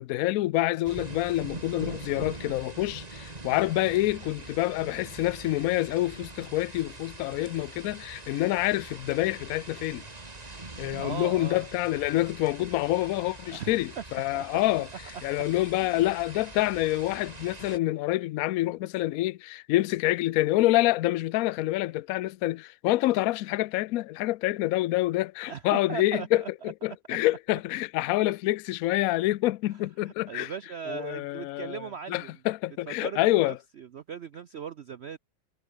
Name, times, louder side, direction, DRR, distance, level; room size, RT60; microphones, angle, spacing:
voice 1, 0.0-10.1 10.8-14.9 15.2-30.5 30.9-31.8 32.1-33.6, left 17 dB, 75° left, 0.8 m, -27 dB
sound 1, 0.8-17.8, right 2 dB, 20° right, 2.2 m, -43 dB
voice 2, 11.0-11.6 13.5-14.0 14.3-14.7 15.8-16.1 25.5-26.5 26.9-27.0 29.7-29.8 30.0-32.3 32.9-35.2, right 7 dB, 90° right, 0.5 m, -38 dB
omnidirectional pair, 2.0 m